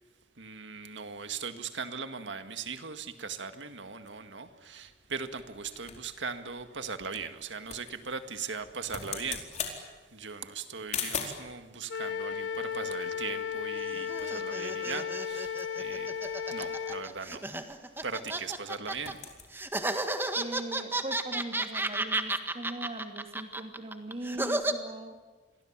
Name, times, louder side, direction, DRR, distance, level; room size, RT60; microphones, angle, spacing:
voice 1, 0.4-16.1 16.5-17.7 18.0-19.3, right 5 dB, 75° right, 1.9 m, -39 dB
sound 1, 4.1-11.5 12.3-13.9 14.2-14.3 14.6-14.9 15.3-18.6 18.8-19.5, left 6 dB, 40° left, 4.5 m, -42 dB
Wind instrument woodwind instrument, 11.9-17.0, left 7 dB, 85° left, 1.3 m, -35 dB
sound 2, 13.7-19.1 19.5-24.7, right 2 dB, 10° right, 1.7 m, -33 dB
voice 2, 20.4-25.2, right 1 dB, 30° right, 2.6 m, -40 dB
29.5 x 23.0 x 7.5 m
head